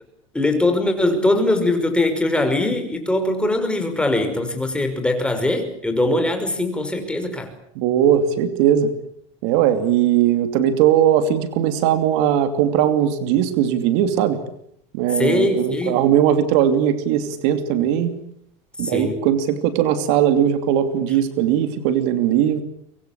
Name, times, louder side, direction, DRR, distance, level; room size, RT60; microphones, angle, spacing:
voice 1, 0.3-7.5 15.2-16.0 18.8-19.2, left 2 dB, 5° left, 7 dB, 5.5 m, -21 dB
voice 2, 7.7-8.9 9.4-14.4 14.9-18.1 18.8-22.6, right 10 dB, 65° right, 9 dB, 2.8 m, -19 dB
24.5 x 22.5 x 8.5 m, 0.70 s
supercardioid pair, 125°, 16 cm